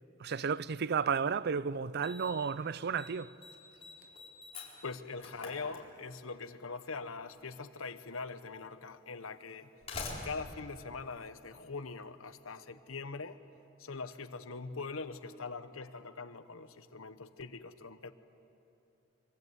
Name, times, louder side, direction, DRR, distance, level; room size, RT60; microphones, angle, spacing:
voice 1, 0.2-3.4, right 6 dB, 55° right, 0.5 m, -33 dB
Slam, 1.2-1.3 2.0-2.5 2.8-3.1 3.4-6.3 7.5-7.6 8.4-8.5 9.5-11.8, left 3 dB, 30° left, 4.4 m, -45 dB
voice 2, 4.8-9.7 10.2-13.4 13.8-18.1, left 4 dB, 90° left, 1.1 m, -42 dB
25.5 x 24.5 x 8.2 m
head